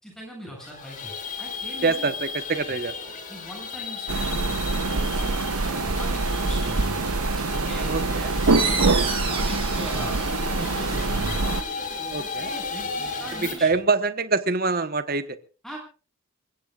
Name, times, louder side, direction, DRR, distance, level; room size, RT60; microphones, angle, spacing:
voice 1, 0.0-2.1 3.3-7.1 7.5-7.9 8.4-10.2 10.6-11.7 12.2-13.7 15.6-15.8, right 1 dB, ahead, -1 dB, 7.8 m, -40 dB
sound 1, 0.6-13.6, left 4 dB, 35° left, 3.9 m, -34 dB
voice 2, 1.8-2.9 7.9-8.3 12.1-12.5 13.4-15.4, right 4 dB, 45° right, 11 dB, 1.2 m, -25 dB
sound 2, 4.1-11.6, right 3 dB, 90° right, 0.9 m, -25 dB
sound 3, 8.5-13.8, right 4 dB, 25° right, 5.1 m, -33 dB
27.5 x 15.5 x 2.5 m, 0.36 s
head